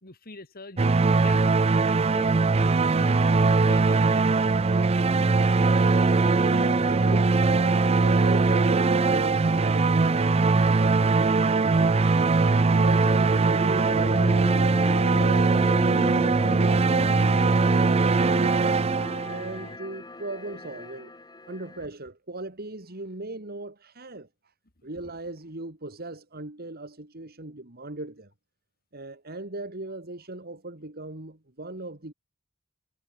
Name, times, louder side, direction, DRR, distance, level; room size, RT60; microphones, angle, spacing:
voice 1, 0.0-1.0 1.2-1.5 1.9-4.5, left 2 dB, 45° left, 3.0 m, -44 dB
sound 1, 0.8-19.7, right 3 dB, 30° right, 0.4 m, -21 dB
sound 2, 5.0-21.9, left 2 dB, 20° left, 1.5 m, -39 dB
voice 2, 6.8-7.4 7.8-12.2 12.6-18.8 19.3-21.1 21.5-24.3 24.8-28.3 28.9-32.1, right 2 dB, 45° right, 2.5 m, -38 dB
head